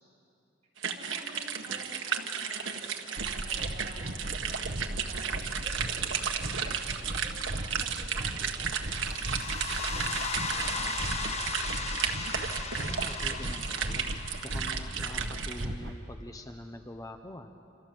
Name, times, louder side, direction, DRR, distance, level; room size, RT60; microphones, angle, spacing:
sound 1, 0.8-15.6, right 7 dB, 75° right, 1.7 m, -34 dB
voice 1, 0.9-4.0 4.4-10.1 10.5-12.5, right 1 dB, 35° right, -2 dB, 7.0 m, -50 dB
sound 2, 2.5-3.5 8.8-15.5, left 4 dB, 35° left, 1.3 m, -38 dB
sound 3, 3.2-16.0, right 1 dB, 60° right, 1.3 m, -38 dB
voice 2, 12.8-14.1 14.4-17.5, left 1 dB, 20° left, 6 dB, 0.8 m, -44 dB
28.5 x 27.0 x 7.6 m, 2.9 s
head